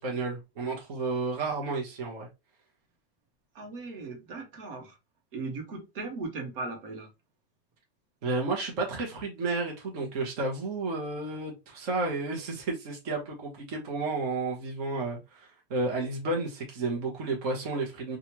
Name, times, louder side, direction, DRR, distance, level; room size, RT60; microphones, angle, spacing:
voice 1, 0.0-2.3 8.2-18.2, right 3 dB, 40° right, 1.0 m, -32 dB
voice 2, 3.5-5.0 5.3-7.1, right 3 dB, 65° right, 1.1 m, -38 dB
3.1 x 2.4 x 2.9 m
supercardioid pair, 175°, 29 cm